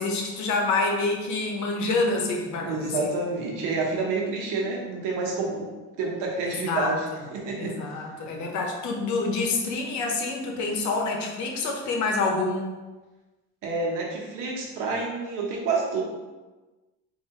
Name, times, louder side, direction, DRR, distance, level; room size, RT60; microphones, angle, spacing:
voice 1, 0.0-2.9 6.5-7.0 7.6-12.7, left 3 dB, 65° left, 1 dB, 0.9 m, -27 dB
voice 2, 2.6-5.7 6.0-7.1 7.3-7.7 13.6-16.0, right 3 dB, 85° right, -2 dB, 1.0 m, -28 dB
4.4 x 2.7 x 2.9 m, 1.2 s
cardioid pair, 105°, 31 cm